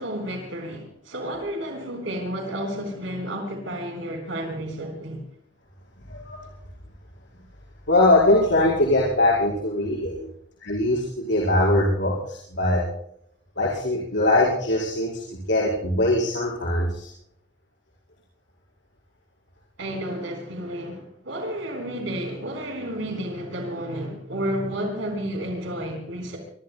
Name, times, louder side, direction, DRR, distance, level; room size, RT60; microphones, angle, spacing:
voice 1, 0.0-5.2 19.8-26.4, equal, 90° right, 4.1 m, -31 dB
voice 2, 7.9-10.2 10.6-12.8 13.6-15.2 15.5-17.1, left 1 dB, 65° left, 4.8 m, -21 dB
25.0 x 24.5 x 2.2 m
head